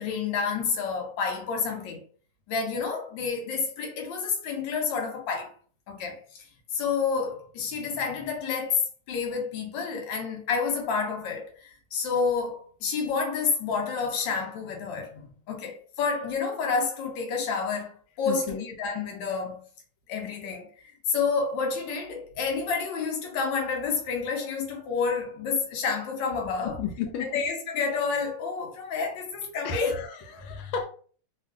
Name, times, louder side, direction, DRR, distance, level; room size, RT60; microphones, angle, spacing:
voice 1, 0.0-2.0 2.5-5.5 5.9-6.2 6.7-8.8 9.1-19.6 20.1-26.8 27.2-30.0, left 5 dB, 70° left, 1.4 m, -29 dB
voice 2, 18.3-18.7 26.6-27.3 29.6-30.9, left 6 dB, 90° left, 1.4 m, -33 dB
3.5 x 2.3 x 2.3 m
omnidirectional pair, 2.2 m